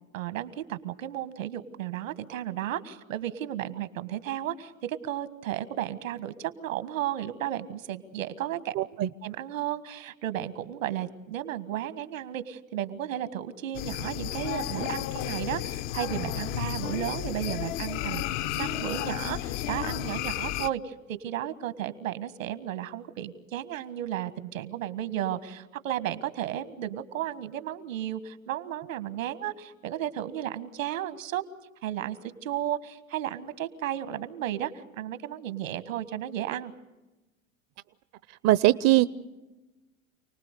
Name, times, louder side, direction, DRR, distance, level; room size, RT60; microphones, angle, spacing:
voice 1, 0.1-8.7 9.2-31.4 31.8-36.7, right 11 dB, 80° right, 13 dB, 1.6 m, -34 dB
voice 2, 8.8-9.1 38.4-39.1, right 16 dB, 40° right, 16 dB, 0.7 m, -21 dB
sound 1, 13.7-20.7, left 13 dB, 60° left, 0.9 m, -32 dB
29.0 x 19.5 x 6.7 m, 1.1 s
hypercardioid pair, 85°, 39 cm